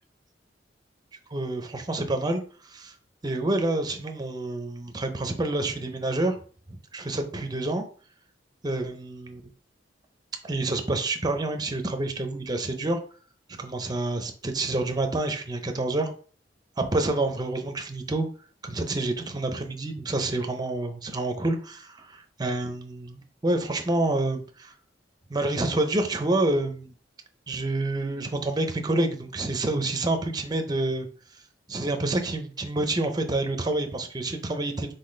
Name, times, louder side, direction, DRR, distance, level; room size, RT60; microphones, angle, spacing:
voice 1, 1.3-3.0 3.2-6.4 6.7-7.9 8.6-9.4 10.4-13.0 13.6-16.1 16.8-18.3 18.6-24.7 25.3-26.9 27.5-31.1 31.3-31.4 31.7-34.9, right 2 dB, 20° right, 6 dB, 0.6 m, -28 dB
4.1 x 3.9 x 3.2 m, 0.42 s
head